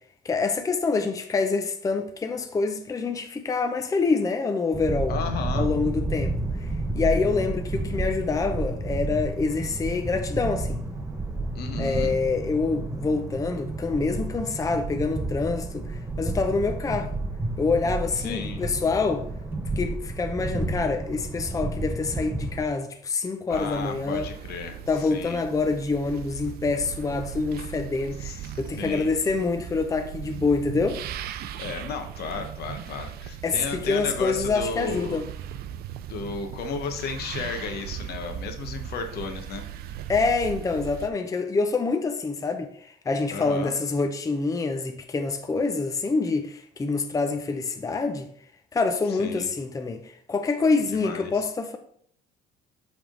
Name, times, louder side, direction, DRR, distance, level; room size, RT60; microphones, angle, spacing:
voice 1, 0.2-5.1 5.6-6.3 6.9-10.8 11.8-17.1 17.6-19.2 19.8-24.3 24.9-31.0 33.4-35.3 40.1-48.3 48.7-51.8, left 4 dB, 20° left, 0.6 m, -26 dB
sound 1, 4.7-22.7, right 2 dB, 10° right, 0.8 m, -31 dB
voice 2, 5.1-5.7 11.5-12.1 18.2-18.6 23.5-25.4 28.2-29.1 31.6-35.2 36.1-39.6 43.3-43.7 49.1-49.5 50.9-51.4, left 5 dB, 70° left, 1.0 m, -34 dB
sound 2, 23.5-41.1, right 10 dB, 65° right, 0.5 m, -38 dB
7.7 x 3.6 x 3.8 m
cardioid pair, 110°, 17 cm